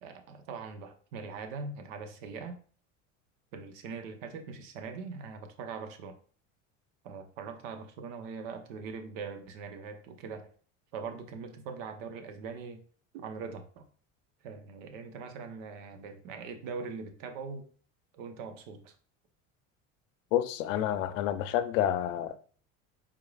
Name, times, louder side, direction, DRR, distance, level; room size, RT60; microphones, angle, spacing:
voice 1, 0.0-2.6 3.5-6.2 7.0-10.5 10.9-12.8 13.1-13.8 14.4-17.7 18.1-18.9, right 5 dB, 75° right, 0.9 m, -41 dB
voice 2, 20.3-22.4, left 11 dB, 75° left, 0.6 m, -29 dB
4.6 x 3.7 x 2.3 m
hypercardioid pair, 75°, 39 cm